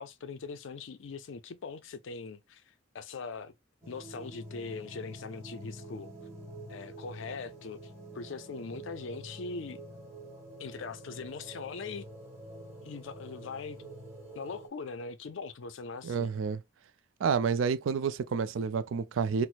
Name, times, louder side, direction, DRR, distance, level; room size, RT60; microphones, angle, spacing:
voice 1, 0.0-3.5 3.9-6.1 6.7-9.8 10.6-12.0 12.8-13.9 14.3-16.3, left 4 dB, 70° left, 0.4 m, -41 dB
sound 1, 3.8-14.7, right 1 dB, 15° right, 1.3 m, -47 dB
voice 2, 16.0-16.6 17.2-19.5, right 6 dB, 70° right, 0.4 m, -29 dB
4.4 x 2.0 x 2.4 m
head